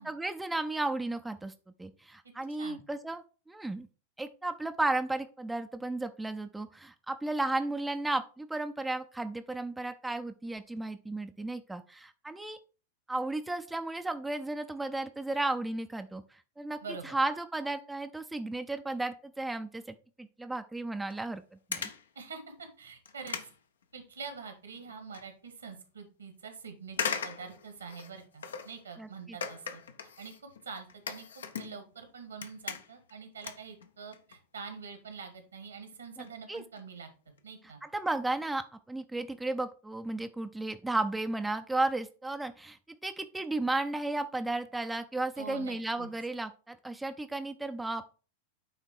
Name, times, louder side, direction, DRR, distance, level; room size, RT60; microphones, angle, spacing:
voice 1, 0.0-1.5 1.8-3.9 4.2-12.6 13.1-21.4 21.7-21.9 29.0-29.4 36.2-36.6 37.8-48.1, right 2 dB, 5° right, 8 dB, 0.5 m, -34 dB
voice 2, 16.8-17.2 22.2-23.4 23.9-30.3 30.6-31.3 31.5-37.1 37.4-37.8 45.4-46.1, right 5 dB, 75° right, 7 dB, 1.7 m, -45 dB
sound 1, 21.1-21.3 21.7-22.1 22.6-22.7 23.1-24.4 24.8-25.2 25.7-25.8 26.9-28.8 29.4-32.0 32.3-33.1 33.4-34.4 34.7-34.8 35.5-35.6 35.9-36.0 36.2-36.3 36.6-36.9 37.3-37.4 37.7-37.8, left 6 dB, 65° left, 0.7 m, -39 dB
9.0 x 3.6 x 4.5 m, 0.36 s
figure-of-eight pair, 90°, 0 cm